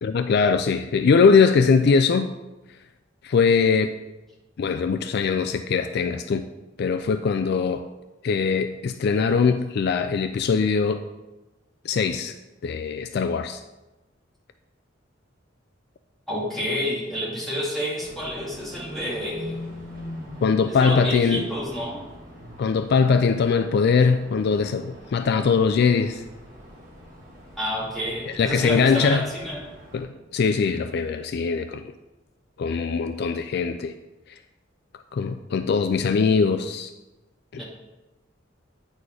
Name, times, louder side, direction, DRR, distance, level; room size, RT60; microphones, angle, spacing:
voice 1, 0.0-2.3 3.2-3.9 4.6-6.5 6.8-7.8 8.2-11.0 11.9-12.3 12.6-13.6 20.4-21.4 22.6-26.2 28.4-29.3 29.9-31.8 32.6-33.9 35.1-36.9 37.5-37.6, left 5 dB, 55° left, 9 dB, 0.3 m, -21 dB
voice 2, 16.3-19.6 20.7-22.0 27.6-29.6 37.5-37.6, equal, ahead, -8 dB, 2.7 m, -29 dB
sound 1, 18.0-30.0, left 1 dB, 50° right, 2.0 m, -42 dB
9.4 x 4.2 x 4.9 m, 1.1 s
head